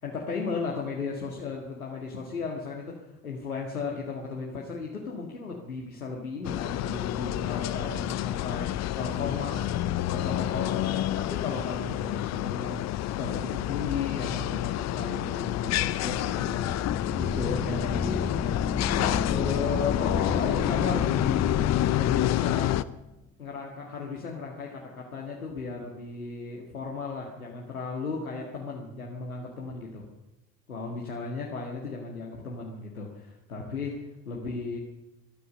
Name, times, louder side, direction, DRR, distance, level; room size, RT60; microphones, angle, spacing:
voice 1, 0.0-18.5 18.8-22.8 23.4-30.1 30.7-34.8, left 4 dB, 80° left, -2 dB, 2.0 m, -35 dB
sound 1, 6.4-22.8, left 14 dB, 40° left, 0.7 m, -29 dB
sound 2, 16.3-23.1, left 4 dB, 15° left, 1.3 m, -33 dB
21.5 x 13.0 x 5.3 m, 1.0 s
figure-of-eight pair, 60°, 42 cm